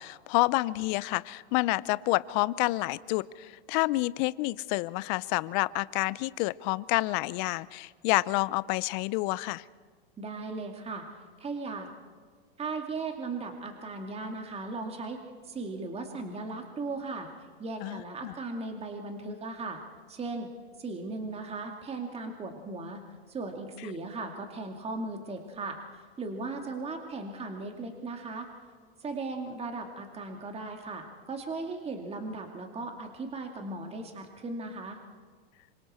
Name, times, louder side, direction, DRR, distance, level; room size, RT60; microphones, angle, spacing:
voice 1, 0.0-9.6 17.8-18.3, left 21 dB, 50° left, 20 dB, 0.6 m, -29 dB
voice 2, 10.2-11.0 11.4-11.9 12.6-17.3 17.6-19.8 20.1-20.5 20.8-23.0 23.3-28.5 29.0-35.0, right 3 dB, 20° right, 4 dB, 2.3 m, -37 dB
26.5 x 25.0 x 4.4 m, 1.5 s
hypercardioid pair, 110°, 31 cm